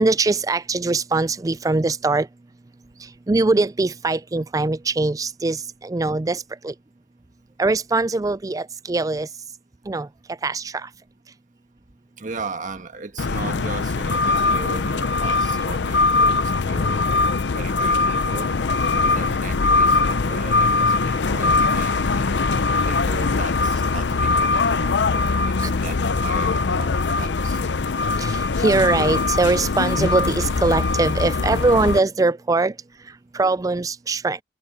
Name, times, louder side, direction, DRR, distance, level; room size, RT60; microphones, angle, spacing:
voice 1, 0.0-2.3 3.3-6.7 7.6-9.3 9.9-10.1 10.4-10.9 25.6-25.7 28.2-32.7 33.3-34.4, right 3 dB, 20° right, 0.4 m, -22 dB
voice 2, 12.2-17.1 17.5-18.5 18.9-22.4 22.7-27.6, right 4 dB, 45° right, 1.4 m, -37 dB
sound 1, 13.2-32.0, left 3 dB, 70° left, 0.6 m, -21 dB
head